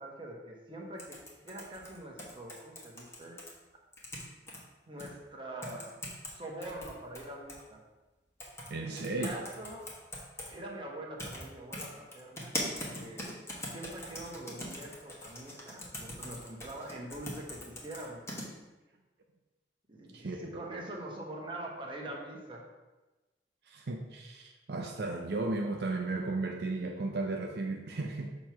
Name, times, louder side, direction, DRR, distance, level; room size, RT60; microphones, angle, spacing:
voice 1, 0.0-3.4 4.9-6.0 6.3-7.8 8.8-9.9 10.5-13.4 13.7-18.2 19.9-22.7, right 1 dB, 30° right, -1 dB, 1.2 m, -44 dB
sound 1, 1.0-3.5 3.9-4.6 5.0-5.1 5.6-6.3 6.6-7.6 8.4-8.7 9.0-10.5 11.2-11.4 11.7-18.4, left 1 dB, 15° left, 1.3 m, -41 dB
voice 2, 8.7-9.3 20.1-20.6 23.7-28.4, right 2 dB, 65° right, 1 dB, 0.6 m, -35 dB
6.6 x 3.1 x 5.7 m, 1.1 s
head